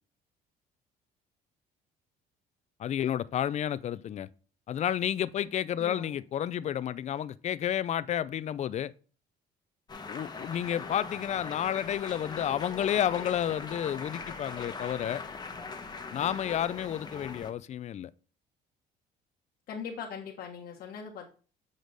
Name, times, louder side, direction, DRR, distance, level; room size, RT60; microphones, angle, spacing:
voice 1, 2.8-4.3 4.7-8.9 10.1-15.3 16.1-18.1, left 10 dB, 45° left, 0.4 m, -31 dB
voice 2, 5.8-6.2 19.7-21.3, left 6 dB, 70° left, 1.2 m, -40 dB
sound 1, 9.9-17.5, left 4 dB, 25° left, 1.0 m, -41 dB
8.1 x 5.0 x 3.9 m
cardioid pair, 110°, 17 cm